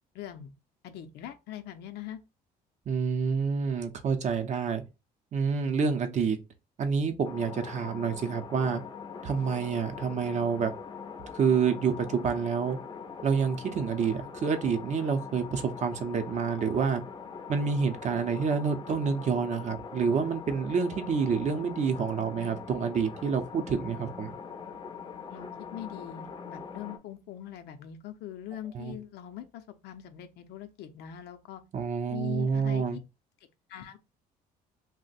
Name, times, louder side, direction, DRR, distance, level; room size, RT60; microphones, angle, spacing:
voice 1, 0.1-0.5 0.8-2.2 25.3-31.6 32.1-33.0 33.7-34.0, left 11 dB, 75° left, 0.5 m, -42 dB
voice 2, 2.9-4.8 5.3-6.4 6.8-8.8 9.2-10.7 11.3-12.8 13.2-17.0 17.5-24.3 28.7-29.0 31.7-33.0, right 6 dB, 45° right, 0.6 m, -28 dB
sound 1, 7.2-27.0, left 6 dB, 25° left, 0.5 m, -42 dB
2.5 x 2.1 x 4.0 m
cardioid pair, 110°, 17 cm